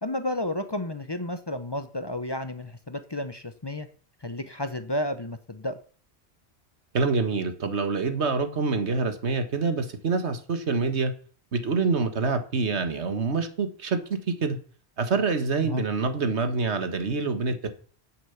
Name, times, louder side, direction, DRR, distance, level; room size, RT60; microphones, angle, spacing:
voice 1, 0.0-3.9 4.2-5.8 15.6-15.9, left 1 dB, 25° left, 10 dB, 0.8 m, -32 dB
voice 2, 6.9-11.1 11.5-14.0 14.4-14.6 15.0-17.7, right 4 dB, 80° right, 9 dB, 1.8 m, -26 dB
10.0 x 7.8 x 7.1 m, 0.42 s
omnidirectional pair, 1.1 m